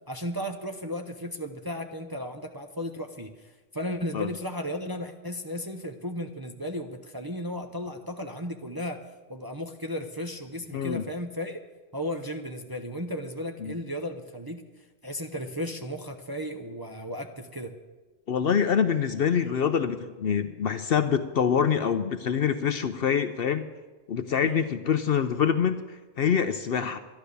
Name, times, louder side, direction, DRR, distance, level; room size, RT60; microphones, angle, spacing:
voice 1, 0.1-9.0 9.3-11.6 11.9-14.6 15.0-17.8 24.4-24.6 26.8-26.9, equal, 25° right, 5 dB, 0.6 m, -35 dB
voice 2, 10.7-11.0 13.6-13.8 18.3-23.7 24.1-27.0, left 7 dB, 60° left, 10 dB, 0.7 m, -25 dB
11.5 x 11.5 x 6.8 m, 1.2 s
omnidirectional pair, 1.3 m